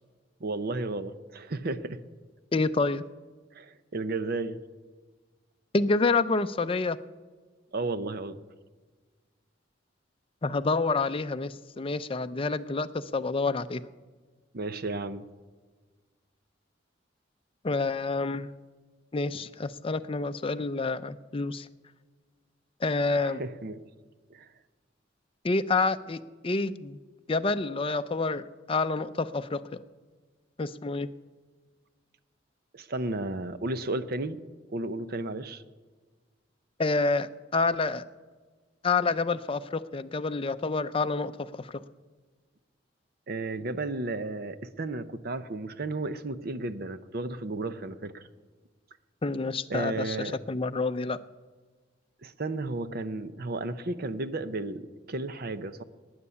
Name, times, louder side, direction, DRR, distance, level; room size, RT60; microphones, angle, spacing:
voice 1, 0.4-2.0 3.5-4.6 7.7-8.4 14.5-15.2 23.2-23.8 24.3-24.5 32.7-34.4 34.7-35.6 43.3-48.2 49.7-50.4 52.2-55.8, right 2 dB, 55° right, 12 dB, 0.7 m, -33 dB
voice 2, 2.5-3.0 5.7-7.0 10.4-12.9 13.1-13.8 17.6-18.5 19.1-21.7 22.8-23.4 25.4-26.2 26.4-27.0 27.3-29.6 30.6-31.1 36.8-38.0 38.8-41.5 49.2-50.2 50.5-51.2, left 3 dB, 30° left, 11 dB, 0.5 m, -28 dB
12.5 x 9.6 x 9.8 m, 1.4 s
head